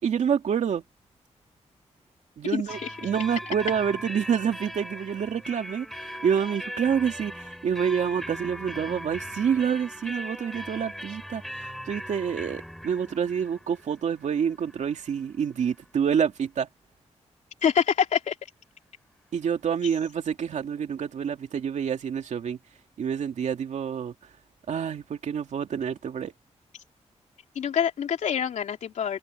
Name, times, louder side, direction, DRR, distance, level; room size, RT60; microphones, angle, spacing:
voice 1, 0.0-0.8 2.4-16.7 19.3-22.6 23.0-24.1 24.7-26.3, right 7 dB, 80° right, 2.5 m, -27 dB
voice 2, 2.4-3.0 17.6-18.4 27.5-29.2, left 8 dB, 90° left, 3.2 m, -26 dB
sound 1, 2.7-16.3, equal, ahead, 4.9 m, -40 dB
wide cardioid pair, 125°, 12 cm